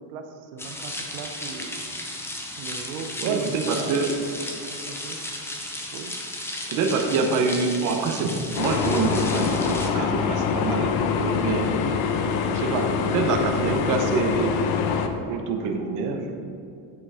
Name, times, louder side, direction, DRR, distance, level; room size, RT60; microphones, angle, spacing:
voice 1, 0.0-1.9 2.6-4.0 4.5-5.2 5.9-6.1, right 5 dB, 80° right, 5 dB, 0.9 m, -38 dB
sound 1, 0.6-9.9, left 1 dB, 5° left, 0.5 m, -35 dB
voice 2, 3.2-4.1 6.7-11.7 12.5-14.6 15.2-16.3, right 4 dB, 45° right, 3 dB, 0.9 m, -26 dB
sound 2, 8.6-15.1, left 6 dB, 55° left, 0.8 m, -25 dB
9.5 x 5.5 x 4.9 m, 2.7 s
cardioid pair, 175°, 45 cm